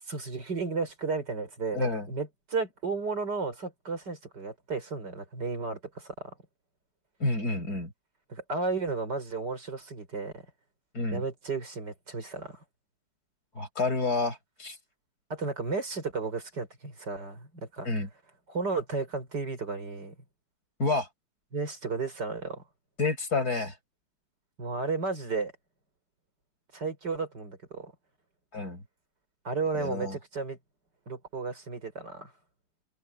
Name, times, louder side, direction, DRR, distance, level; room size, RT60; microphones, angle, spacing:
voice 1, 0.1-6.3 8.3-10.4 11.1-12.6 15.3-17.9 18.5-20.2 21.5-22.6 24.6-25.5 26.7-27.9 29.4-30.6 31.1-32.3, right 4 dB, 55° right, 5.5 m, -33 dB
voice 2, 1.7-2.1 7.2-7.9 10.9-11.2 13.6-14.8 17.9-18.1 20.8-21.1 23.0-23.7 28.5-28.8 29.7-30.2, left 3 dB, 45° left, 7.1 m, -29 dB
open air
omnidirectional pair, 2.2 m